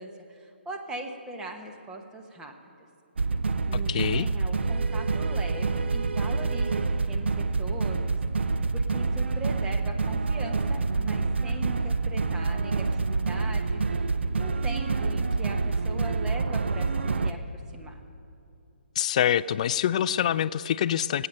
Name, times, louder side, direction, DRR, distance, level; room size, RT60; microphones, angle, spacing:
voice 1, 0.0-2.5 3.7-18.0, right 2 dB, 10° right, 3 dB, 1.0 m, -41 dB
sound 1, 3.2-17.3, right 4 dB, 70° right, 0.7 m, -27 dB
voice 2, 3.9-4.3 19.0-21.3, left 10 dB, 35° left, 17 dB, 0.3 m, -25 dB
18.5 x 8.7 x 6.6 m, 2.6 s
hypercardioid pair, 150°, 6 cm